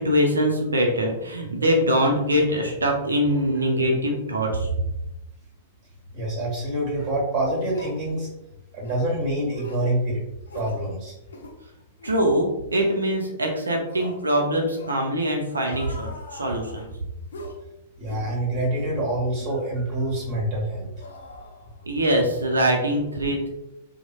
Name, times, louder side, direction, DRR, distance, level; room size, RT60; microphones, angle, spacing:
voice 1, 0.0-4.7 12.0-16.9 21.9-23.5, equal, 85° right, 2 dB, 0.5 m, -23 dB
voice 2, 6.1-8.3 8.7-10.2 10.5-11.1 18.0-20.9, right 1 dB, 35° right, -3 dB, 1.4 m, -26 dB
sound 1, 7.0-7.1 7.7-8.0 8.8-9.1 9.5-10.0 10.5-10.8 11.3-11.6 12.0-12.2 12.7-13.0 13.9-14.2 14.7-15.1 15.6-16.9 17.3-17.6 18.1-18.3 18.8-18.9 19.4-19.6 20.1-20.3 21.0-22.0 22.3-22.5, left 1 dB, 70° left, 0.5 m, -41 dB
3.0 x 2.1 x 2.3 m, 0.90 s
figure-of-eight pair, 105°, 0 cm